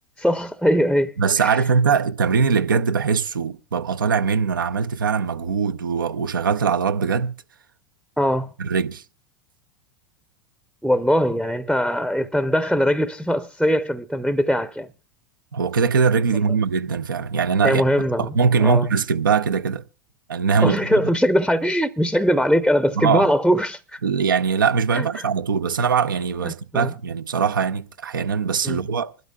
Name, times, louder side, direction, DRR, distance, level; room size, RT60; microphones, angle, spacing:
voice 1, 0.2-1.6 8.2-8.5 10.8-14.9 17.6-18.3 18.6-18.9 20.6-24.0 24.9-25.3 26.4-26.9 28.6-28.8, equal, ahead, 0.6 m, -21 dB
voice 2, 1.2-7.3 8.6-9.0 15.5-17.8 18.2-19.8 20.3-21.0 23.0-23.3 24.0-29.1, right 5 dB, 85° right, 0.6 m, -21 dB
26.5 x 12.0 x 2.3 m
hypercardioid pair, 90°, 11 cm